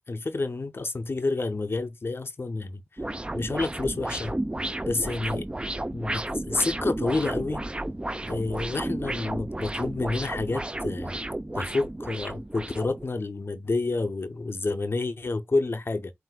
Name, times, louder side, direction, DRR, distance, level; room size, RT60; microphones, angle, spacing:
voice 1, 0.1-2.8 3.3-4.3 4.9-5.5 5.9-7.6 8.3-11.1 11.5-16.1, left 3 dB, 55° left, 0.5 m, -29 dB
sound 1, 3.0-13.0, right 1 dB, 20° right, 0.5 m, -32 dB
7.4 x 2.5 x 2.2 m
cardioid pair, 40°, 5 cm